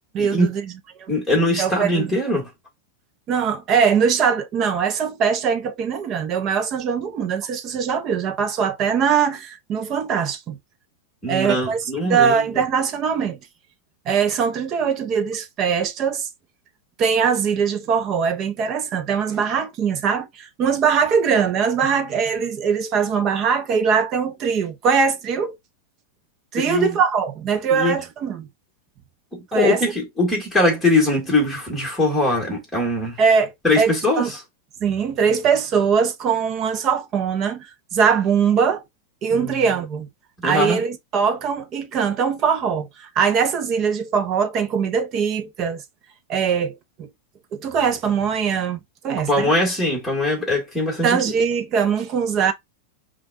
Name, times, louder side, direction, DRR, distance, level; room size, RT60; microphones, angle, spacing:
voice 1, 0.1-0.7 1.0-1.1 1.6-2.1 3.3-10.6 11.3-13.4 14.1-16.3 17.0-25.6 26.5-28.5 29.5-29.8 33.2-34.3 34.8-38.8 39.2-40.1 40.4-45.8 46.3-47.1 47.5-48.8 49.0-49.5 51.0-52.5, right 6 dB, 25° right, 0.7 m, -21 dB
voice 2, 1.1-2.5 11.2-12.4 26.6-27.0 27.7-28.0 29.3-33.2 33.6-34.2 39.3-39.6 40.4-40.8 49.3-51.2, left 1 dB, 5° left, 1.9 m, -21 dB
5.4 x 2.4 x 2.6 m
supercardioid pair, 165°, 0 cm